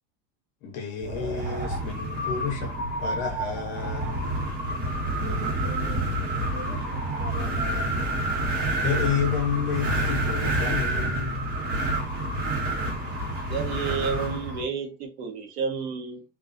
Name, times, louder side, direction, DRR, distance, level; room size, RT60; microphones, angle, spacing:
voice 1, 0.6-2.7 3.0-4.5 8.8-11.5, left 7 dB, 35° left, 0.5 m, -30 dB
Wind, 1.0-14.6, right 1 dB, 55° right, 1.3 m, -28 dB
voice 2, 5.2-8.0, right 3 dB, 30° right, 0.7 m, -42 dB
voice 3, 13.5-16.2, right 5 dB, 80° right, 0.9 m, -31 dB
2.3 x 2.3 x 2.5 m
supercardioid pair, 175°, 32 cm